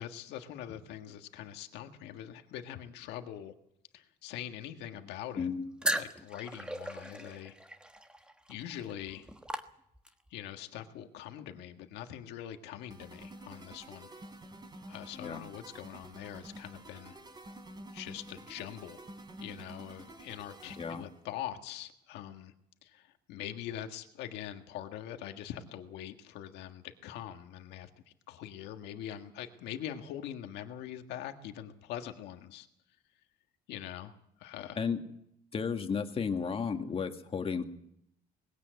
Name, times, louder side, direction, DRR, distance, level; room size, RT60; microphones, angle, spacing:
voice 1, 0.0-3.5 3.9-5.5 6.0-7.6 8.5-9.3 10.3-14.1 14.9-17.2 17.9-19.0 19.4-22.5 22.8-27.9 28.3-32.7 33.7-34.1 34.4-34.8, left 11 dB, 90° left, 6 dB, 1.7 m, -43 dB
voice 2, 5.4-5.7 15.1-15.4 20.8-21.0 34.8-35.0 35.5-37.6, left 6 dB, 35° left, 6 dB, 2.0 m, -33 dB
sound 1, 5.8-10.3, right 1 dB, 5° right, 1.3 m, -38 dB
sound 2, 12.9-21.2, right 1 dB, 25° right, 3.8 m, -49 dB
20.5 x 16.5 x 8.1 m, 0.75 s
cardioid pair, 110°, 17 cm